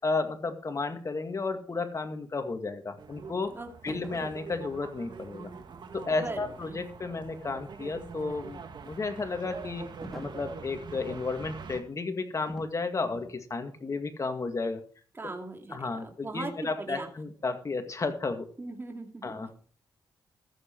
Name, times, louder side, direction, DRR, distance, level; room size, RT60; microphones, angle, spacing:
voice 1, 0.0-3.6 3.8-5.5 5.9-9.9 10.1-14.8 15.7-18.5 19.2-19.5, left 3 dB, 40° left, 7 dB, 2.1 m, -33 dB
sound 1, 3.0-11.8, right 5 dB, 60° right, 1.7 m, -44 dB
voice 2, 3.5-4.1 6.1-6.8 15.1-17.1 18.6-19.4, right 2 dB, 25° right, 4 dB, 2.3 m, -40 dB
sound 2, 3.9-4.4 10.0-10.5 12.5-12.8 13.1-13.4, right 1 dB, ahead, 2.0 m, -44 dB
14.0 x 7.5 x 4.6 m, 0.43 s
cardioid pair, 75°, 8 cm